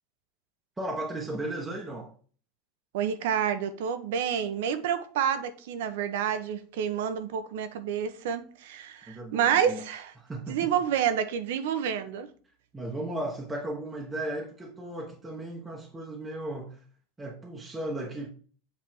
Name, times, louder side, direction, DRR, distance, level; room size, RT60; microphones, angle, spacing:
voice 1, 0.8-2.1 9.1-9.8 10.2-10.7 12.7-16.8 17.2-18.3, right 1 dB, 10° right, 1.0 m, -35 dB
voice 2, 2.9-10.1 10.5-12.3, right 8 dB, 80° right, 1.0 m, -29 dB
7.9 x 3.6 x 4.5 m
supercardioid pair, 165°, 0 cm